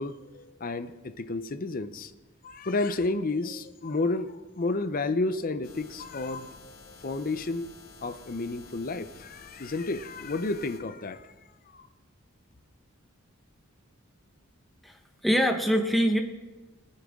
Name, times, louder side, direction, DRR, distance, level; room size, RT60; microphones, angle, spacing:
voice 1, 0.0-2.1 2.4-7.7 8.0-11.3 11.7-11.9, left 3 dB, 40° left, 10 dB, 0.7 m, -31 dB
sound 1, 5.6-10.8, left 4 dB, 70° left, 1.7 m, -51 dB
voice 2, 14.8-16.2, equal, ahead, 3 dB, 1.2 m, -24 dB
20.0 x 9.9 x 3.7 m, 1.1 s
head